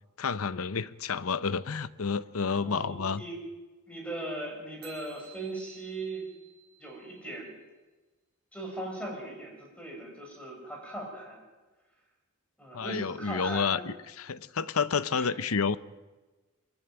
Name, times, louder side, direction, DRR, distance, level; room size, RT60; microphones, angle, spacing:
voice 1, 0.2-3.2 12.7-15.8, left 5 dB, 75° left, 0.8 m, -30 dB
voice 2, 2.5-3.4 3.9-6.3 6.8-7.5 8.5-11.4 12.6-13.9 15.1-15.3, right 1 dB, 5° left, 6.7 m, -39 dB
sound 1, 4.8-7.4, right 9 dB, 50° right, 3.4 m, -54 dB
23.0 x 14.5 x 9.0 m
head